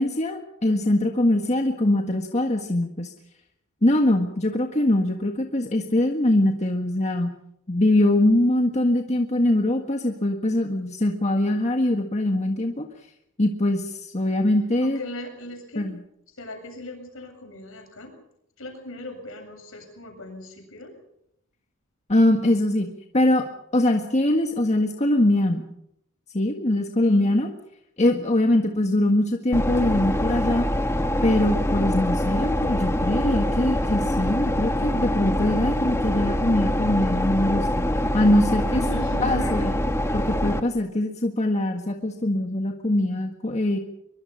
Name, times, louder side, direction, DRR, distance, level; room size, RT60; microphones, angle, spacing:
voice 1, 0.0-3.1 3.8-7.3 7.7-12.9 13.4-15.0 15.7-16.0 22.1-22.9 23.1-23.4 23.7-25.6 26.3-27.5 28.0-30.6 31.2-37.9 38.1-38.8 39.2-39.7 40.1-43.8, left 1 dB, 30° left, 3 dB, 1.7 m, -22 dB
voice 2, 14.8-15.9 16.4-18.1 18.6-20.9 27.0-27.4 28.3-28.4 38.7-39.7, left 1 dB, 65° left, 4 dB, 7.7 m, -38 dB
sound 1, 29.5-40.6, left 1 dB, 10° left, 1.4 m, -24 dB
24.0 x 23.0 x 5.7 m, 0.76 s
head